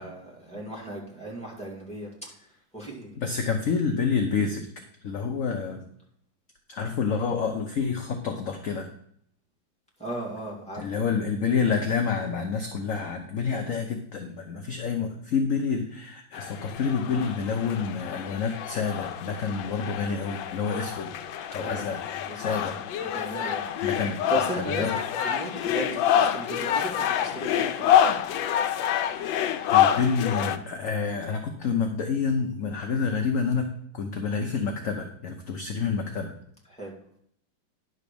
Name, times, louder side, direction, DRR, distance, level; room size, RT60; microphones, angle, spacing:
voice 1, 0.0-2.3 2.7-3.2 10.0-11.1 21.5-21.8 22.3-22.7 23.0-23.9 24.3-24.9 25.2-27.9 36.7-37.0, right 2 dB, 5° left, -3 dB, 2.5 m, -37 dB
voice 2, 3.2-4.7 5.0-5.8 6.7-8.9 10.8-21.1 21.5-22.0 22.4-22.8 23.8-24.2 24.6-24.9 29.6-36.4, left 5 dB, 55° left, 4 dB, 1.0 m, -28 dB
sound 1, 16.3-30.6, left 10 dB, 75° left, 1.4 m, -27 dB
10.5 x 4.1 x 6.9 m, 0.67 s
omnidirectional pair, 2.1 m